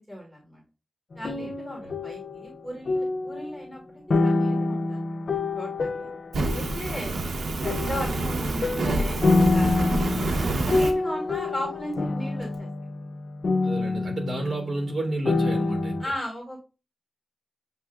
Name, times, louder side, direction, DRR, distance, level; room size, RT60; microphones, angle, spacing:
voice 1, 0.1-0.6 1.1-3.8 4.2-6.1 6.5-7.1 7.4-12.7 16.0-16.6, equal, 5° left, 1.8 m, -37 dB
sound 1, 1.1-3.6 4.1-7.2 7.6-15.0 15.3-16.0, left 3 dB, 60° left, 0.6 m, -27 dB
Fire, 6.3-10.9, right 2 dB, 85° right, 0.8 m, -27 dB
voice 2, 6.8-7.3 10.0-10.4 13.6-16.1, right 1 dB, 55° right, 2.5 m, -32 dB
7.2 x 3.0 x 2.3 m
wide cardioid pair, 135°, 0 cm